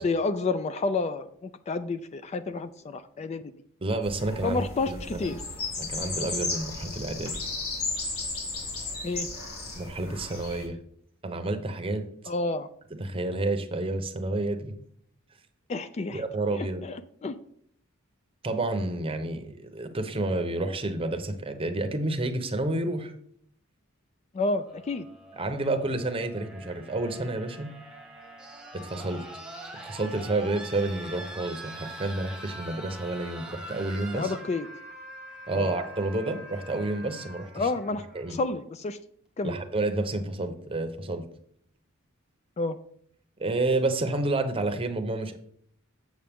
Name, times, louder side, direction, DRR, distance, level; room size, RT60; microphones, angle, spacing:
voice 1, 0.0-3.4 4.4-5.4 9.0-9.3 12.3-12.7 15.7-16.2 16.5-17.4 24.3-25.1 34.1-34.7 35.5-35.7 37.6-38.0 38.3-39.0 39.4-39.6 42.6-42.8, left 3 dB, 30° left, 12 dB, 0.3 m, -30 dB
voice 2, 3.8-5.3 5.8-7.3 9.8-10.8 11.2-12.1 13.0-14.7 16.1-16.8 18.4-23.1 25.3-27.7 28.7-29.2 29.8-34.3 35.5-37.7 38.1-38.4 39.4-41.2 43.4-45.4, right 2 dB, 25° right, 7 dB, 0.8 m, -30 dB
sound 1, 4.0-10.6, left 3 dB, 85° left, 2.5 m, -34 dB
sound 2, 24.6-38.6 39.8-39.9, right 1 dB, 5° right, 1.1 m, -44 dB
7.5 x 7.1 x 3.5 m, 0.65 s
head